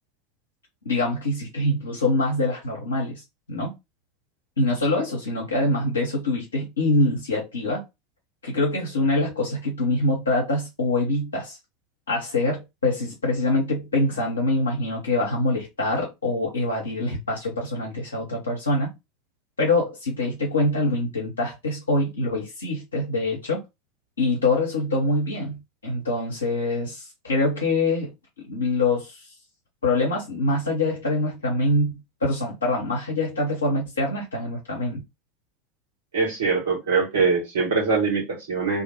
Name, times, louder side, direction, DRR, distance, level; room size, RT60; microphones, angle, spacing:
voice 1, 0.8-3.7 4.6-7.8 8.4-11.6 12.1-18.9 19.6-23.6 24.2-28.1 28.5-29.3 29.8-35.0, left 2 dB, 80° left, 0.6 m, -24 dB
voice 2, 36.1-38.8, right 4 dB, 65° right, 1.1 m, -23 dB
2.2 x 2.1 x 2.9 m
figure-of-eight pair, 80°, 0 cm